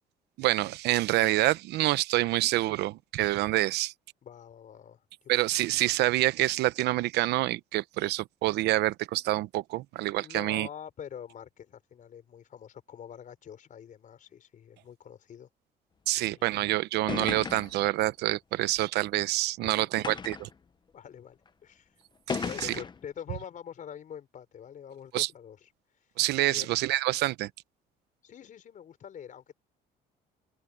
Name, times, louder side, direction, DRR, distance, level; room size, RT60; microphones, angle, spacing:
voice 1, 0.4-3.9 5.3-10.7 16.1-20.5 22.3-22.7 25.1-25.3 26.2-27.5, right 17 dB, 80° right, 0.9 m, -27 dB
voice 2, 4.2-5.3 10.2-15.5 16.2-16.5 19.6-20.0 20.9-21.9 22.4-25.7 26.4-26.7 28.2-29.5, left 8 dB, 50° left, 4.9 m, -45 dB
sound 1, 16.5-16.6 17.1-17.9 18.8-18.9 20.0-20.6 21.5-21.6 22.3-23.0, left 5 dB, 25° left, 1.1 m, -35 dB
open air
cardioid pair, 110°, 17 cm